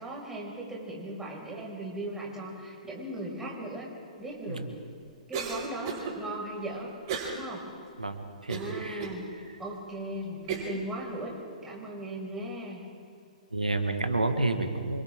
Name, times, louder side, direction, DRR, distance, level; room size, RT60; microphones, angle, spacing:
voice 1, 0.0-3.9 4.2-4.6 5.3-6.9 7.3-7.6 8.5-11.3 11.6-12.8, right 1 dB, 10° right, -3 dB, 6.0 m, -38 dB
Cough, 5.3-6.1 7.1-7.4 7.9-8.0 8.5-9.2 9.8-9.9 10.5-10.8, right 5 dB, 40° right, 5.5 m, -34 dB
voice 2, 8.0-9.1 13.5-15.0, right 2 dB, 90° right, 6 dB, 2.1 m, -30 dB
28.0 x 25.5 x 3.8 m, 2.5 s
figure-of-eight pair, 120°, 4 cm